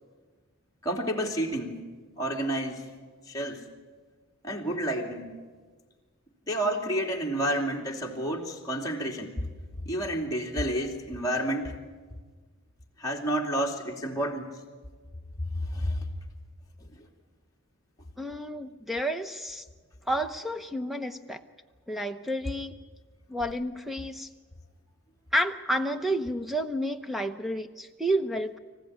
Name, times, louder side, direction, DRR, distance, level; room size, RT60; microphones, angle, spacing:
voice 1, 0.8-1.8 2.2-2.9 3.3-3.6 4.4-5.3 6.5-9.3 9.8-11.8 13.0-14.5 15.5-16.0, right 1 dB, 15° left, -2 dB, 2.8 m, -30 dB
voice 2, 18.2-19.6 20.1-21.4 21.9-22.8 23.3-24.3 25.3-28.6, equal, ahead, 7 dB, 0.8 m, -30 dB
25.5 x 15.0 x 9.6 m, 1.5 s
head